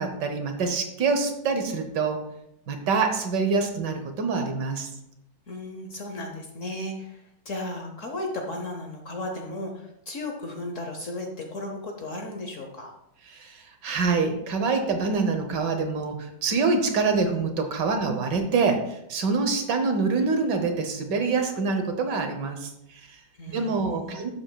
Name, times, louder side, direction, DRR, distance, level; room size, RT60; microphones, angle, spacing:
voice 1, 0.0-2.2 2.7-4.9 13.3-23.2 23.5-24.3, right 4 dB, 65° right, 6 dB, 1.5 m, -26 dB
voice 2, 5.5-12.9 23.4-24.3, left 1 dB, 50° left, 2 dB, 1.1 m, -35 dB
11.0 x 7.7 x 2.3 m, 0.81 s
omnidirectional pair, 2.1 m